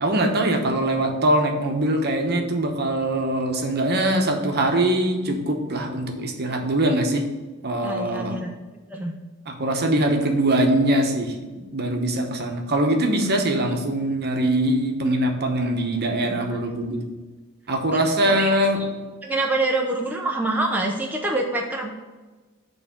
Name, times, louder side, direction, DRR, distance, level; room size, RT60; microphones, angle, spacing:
voice 1, 0.0-7.3 7.6-8.4 9.5-11.3 11.7-17.0 17.7-18.8, right 1 dB, 50° right, 3 dB, 0.9 m, -22 dB
voice 2, 7.8-8.5 8.9-9.1 16.3-16.6 17.9-18.0 18.2-18.6 19.2-21.9, right 2 dB, 10° right, 0 dB, 0.5 m, -26 dB
6.8 x 3.3 x 5.9 m, 1.3 s
head